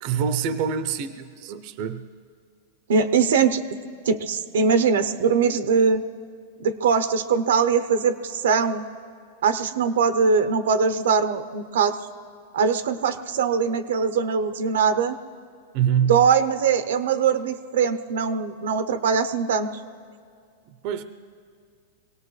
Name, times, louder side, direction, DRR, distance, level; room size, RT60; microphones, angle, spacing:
voice 1, 0.0-2.1 15.7-16.3 20.7-21.0, right 8 dB, 45° right, 12 dB, 0.6 m, -25 dB
voice 2, 2.9-3.6 4.0-6.0 6.6-8.8 9.4-12.0 12.5-15.2 16.0-19.7, right 6 dB, 85° right, 11 dB, 0.7 m, -21 dB
24.5 x 18.0 x 3.2 m, 2.2 s
supercardioid pair, 145°, 0 cm